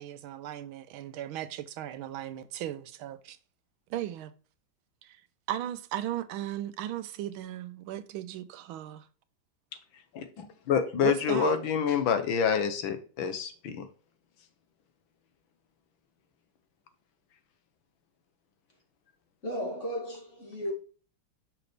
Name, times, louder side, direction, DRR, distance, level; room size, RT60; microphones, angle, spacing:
voice 1, 0.0-3.4 3.9-4.3 5.0-9.1 11.0-11.6, right 12 dB, 80° right, 1.5 m, -36 dB
voice 2, 10.1-13.9, left 7 dB, 75° left, 1.6 m, -27 dB
voice 3, 19.4-20.7, equal, 35° left, 2.3 m, -34 dB
6.0 x 5.8 x 3.2 m
omnidirectional pair, 2.2 m